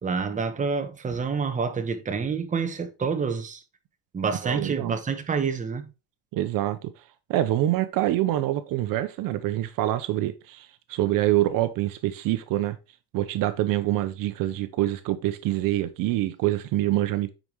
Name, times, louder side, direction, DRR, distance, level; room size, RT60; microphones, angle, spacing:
voice 1, 0.0-3.6 4.1-5.9, right 5 dB, 20° right, 1.1 m, -28 dB
voice 2, 4.4-5.0 6.3-6.9 7.3-12.8 13.1-17.3, right 14 dB, 65° right, 0.8 m, -25 dB
9.2 x 5.0 x 3.0 m
cardioid pair, 130°, 36 cm